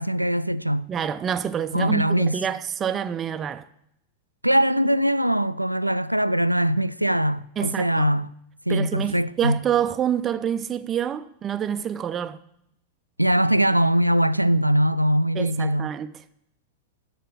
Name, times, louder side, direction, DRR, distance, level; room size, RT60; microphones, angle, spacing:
voice 1, 0.0-0.9 1.7-2.4 4.4-8.3 8.7-9.6 13.2-16.0, right 1 dB, 90° right, 0.3 m, -22 dB
voice 2, 0.9-3.7 7.6-8.1 8.7-12.4 15.3-16.1, right 9 dB, 25° right, 0.5 m, -27 dB
13.0 x 5.1 x 8.5 m
figure-of-eight pair, 90°, 0 cm